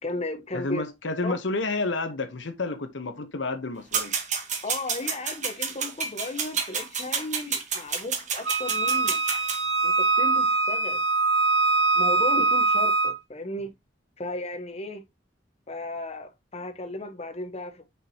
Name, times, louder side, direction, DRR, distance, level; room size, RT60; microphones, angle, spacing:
voice 1, 0.0-0.8 1.2-1.4 4.6-9.2 9.8-11.0 11.9-13.7 14.2-15.0 15.7-17.9, left 2 dB, 35° left, 0.9 m, -35 dB
voice 2, 0.5-4.1, left 3 dB, 80° left, 1.0 m, -30 dB
sound 1, 3.9-9.6, right 6 dB, 40° right, 1.3 m, -30 dB
Wind instrument woodwind instrument, 8.5-13.2, right 3 dB, 70° right, 1.6 m, -23 dB
6.0 x 5.5 x 2.8 m
head